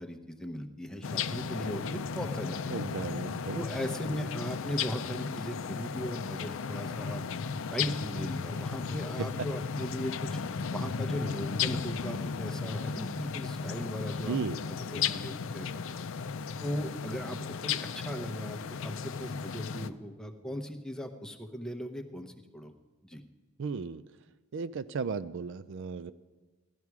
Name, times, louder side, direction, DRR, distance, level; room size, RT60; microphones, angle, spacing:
voice 1, 0.0-2.7 3.5-7.3 7.7-10.4 10.7-14.4 14.7-15.8 16.6-22.7 23.0-23.2, equal, 5° left, 5 dB, 0.8 m, -38 dB
sound 1, 1.0-19.9, left 6 dB, 60° left, 0.5 m, -35 dB
voice 2, 2.7-3.6 14.3-14.6 23.6-24.0 24.5-26.1, right 5 dB, 55° right, 14 dB, 0.4 m, -35 dB
16.5 x 12.0 x 4.7 m, 1.3 s
head